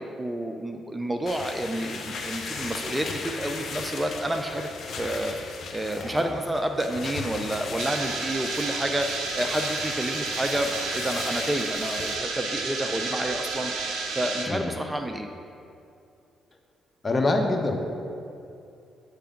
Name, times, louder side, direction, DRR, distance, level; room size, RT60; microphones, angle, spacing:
voice 1, 0.0-5.4 5.7-9.1 9.3-13.7 14.2-15.3, right 1 dB, 15° right, 5 dB, 0.5 m, -29 dB
sound 1, 1.3-12.2, left 4 dB, 60° left, 0.8 m, -37 dB
voice 2, 6.0-6.3 14.5-14.8 17.0-17.8, left 2 dB, 30° left, 3 dB, 0.8 m, -25 dB
sound 2, 7.8-14.5, right 4 dB, 75° right, 0.8 m, -31 dB
8.2 x 3.4 x 5.1 m, 2.6 s
supercardioid pair, 55°, 0 cm